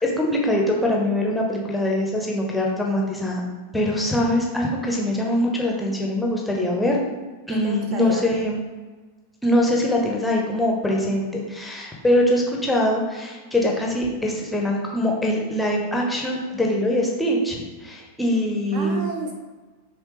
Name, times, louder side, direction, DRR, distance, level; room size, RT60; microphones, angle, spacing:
voice 1, 0.0-3.4 3.7-7.0 7.5-8.6 9.4-19.1, left 1 dB, 5° left, -1 dB, 0.6 m, -23 dB
voice 2, 7.5-8.3 18.7-19.3, right 3 dB, 45° right, 2 dB, 0.5 m, -32 dB
3.3 x 3.0 x 3.0 m, 1.3 s
figure-of-eight pair, 90°, 0 cm